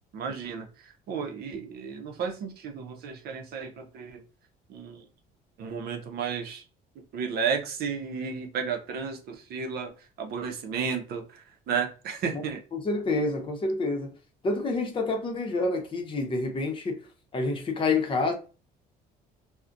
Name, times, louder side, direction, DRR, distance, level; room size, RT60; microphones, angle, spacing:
voice 1, 0.1-4.2 4.7-5.1 5.6-6.6 6.9-12.6, right 6 dB, 70° right, 0.6 m, -33 dB
voice 2, 12.8-14.1 14.4-17.0 17.3-18.3, left 3 dB, 30° left, 0.7 m, -28 dB
2.3 x 2.1 x 2.5 m
cardioid pair, 110°, 17 cm